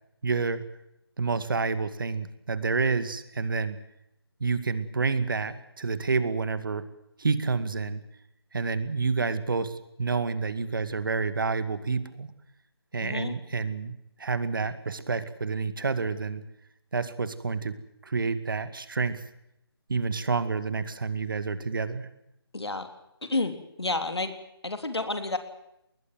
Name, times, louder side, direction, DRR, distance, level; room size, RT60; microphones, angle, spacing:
voice 1, 0.2-0.6 1.2-3.8 4.4-6.9 7.2-8.0 8.5-12.3 12.9-16.4 16.9-17.8 18.0-19.2 19.9-22.1, right 4 dB, 55° right, 13 dB, 2.2 m, -29 dB
voice 2, 13.0-13.3 22.5-22.9 23.2-24.3 24.6-25.4, left 2 dB, 80° left, 8 dB, 3.4 m, -30 dB
21.5 x 20.0 x 7.7 m, 0.83 s
figure-of-eight pair, 160°, 13 cm